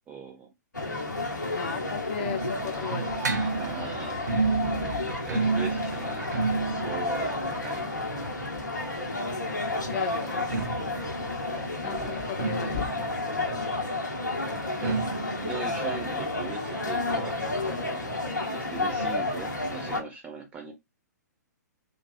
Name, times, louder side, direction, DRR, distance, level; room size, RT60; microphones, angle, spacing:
voice 1, 0.1-0.5 3.6-6.5 6.8-7.9 8.2-8.3 10.2-10.4 11.5-12.2 13.3-13.9 14.8-15.1 15.4-18.1 18.5-20.7, right 5 dB, 15° right, 0.5 m, -41 dB
sound 1, 0.7-20.0, left 2 dB, 80° left, 0.7 m, -31 dB
sound 2, 1.4-9.1 10.2-17.6 17.9-18.0 18.2-18.3 19.0-19.1, right 4 dB, 70° right, 0.4 m, -32 dB
voice 2, 1.5-3.2 4.3-5.1 8.5-8.6 9.9-10.4 11.8-13.1, left 7 dB, 35° left, 0.4 m, -36 dB
2.5 x 2.3 x 2.3 m
figure-of-eight pair, 115°, 10 cm